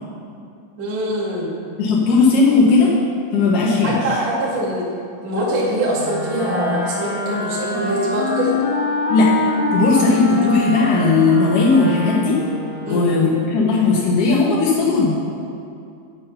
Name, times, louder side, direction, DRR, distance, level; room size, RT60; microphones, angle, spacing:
voice 1, 0.8-1.6 3.8-4.9 5.2-8.5 12.8-13.1, right 1 dB, 45° right, -8 dB, 2.5 m, -23 dB
voice 2, 1.8-2.9 3.3-4.0 9.1-9.3 9.7-12.4 12.9-15.1, left 4 dB, 90° left, -6 dB, 1.8 m, -16 dB
Wind instrument woodwind instrument, 5.9-13.2, left 3 dB, 60° left, 2.8 m, -24 dB
8.3 x 7.2 x 5.6 m, 2.5 s
omnidirectional pair, 5.7 m